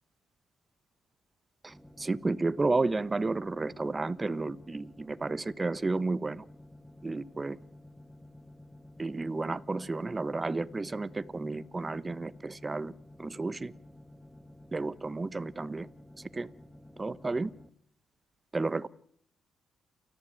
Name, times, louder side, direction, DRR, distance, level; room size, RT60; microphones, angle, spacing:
voice 1, 1.6-6.4 7.0-7.6 9.0-12.9 13.2-13.7 14.7-15.9 16.3-16.5 17.0-17.5 18.5-18.9, right 3 dB, 25° right, 17 dB, 1.2 m, -32 dB
sound 1, 1.7-17.7, left 1 dB, 5° right, 1.7 m, -52 dB
29.0 x 15.0 x 9.2 m, 0.66 s
cardioid pair, 90°, 0 cm